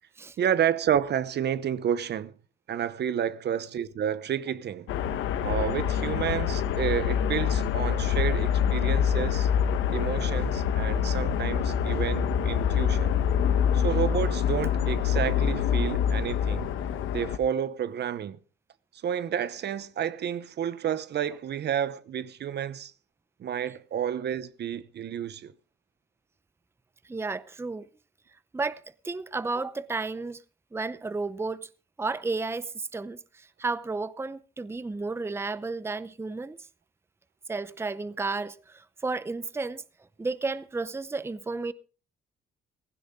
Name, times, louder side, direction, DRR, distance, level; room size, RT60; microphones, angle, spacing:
voice 1, 0.4-2.3 2.7-4.9 5.4-9.5 9.9-13.1 13.7-16.7 17.1-18.4 19.0-22.9 23.4-25.5, right 9 dB, 60° right, 0.8 m, -30 dB
sound 1, 4.9-17.4, left 8 dB, 85° left, 1.2 m, -26 dB
voice 2, 27.1-27.8 28.5-30.4 30.7-31.7 32.0-36.6 37.5-39.8 40.2-41.7, right 3 dB, 10° right, 0.6 m, -32 dB
16.0 x 15.5 x 3.7 m
cardioid pair, 90°, 20 cm